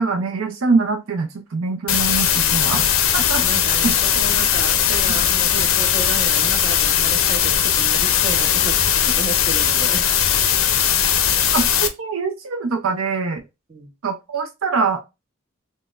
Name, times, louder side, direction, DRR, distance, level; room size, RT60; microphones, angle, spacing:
voice 1, 0.0-2.8 3.1-3.4 3.8-3.9 5.1-5.2 11.5-13.4 14.0-15.0, right 4 dB, 75° right, 0.5 m, -23 dB
sound 1, 1.9-11.9, left 9 dB, 75° left, 0.5 m, -18 dB
voice 2, 2.4-2.9 3.4-10.0 13.7-13.9, right 3 dB, 30° right, 0.8 m, -33 dB
4.1 x 2.0 x 2.3 m
head